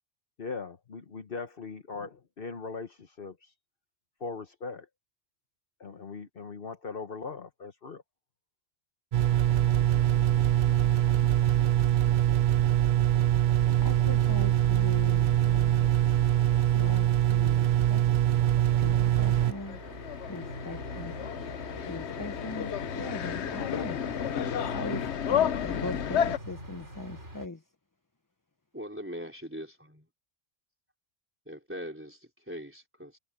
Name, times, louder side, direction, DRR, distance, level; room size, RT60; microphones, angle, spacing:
voice 1, 0.4-3.5 4.2-4.9 5.8-8.0, left 4 dB, 55° left, 1.3 m, -40 dB
sound 1, 9.1-19.5, right 12 dB, 55° right, 0.6 m, -23 dB
voice 2, 13.1-13.4 13.8-16.0 16.7-18.0 18.8-19.8 20.3-21.1 21.4-24.0 24.7-27.6, left 2 dB, 20° left, 1.0 m, -40 dB
sound 2, 18.3-27.5, equal, 85° right, 6.9 m, -43 dB
sound 3, 19.1-26.4, left 9 dB, 75° left, 1.0 m, -32 dB
voice 3, 28.7-30.1 31.5-33.2, equal, 10° right, 3.9 m, -41 dB
omnidirectional pair, 1.2 m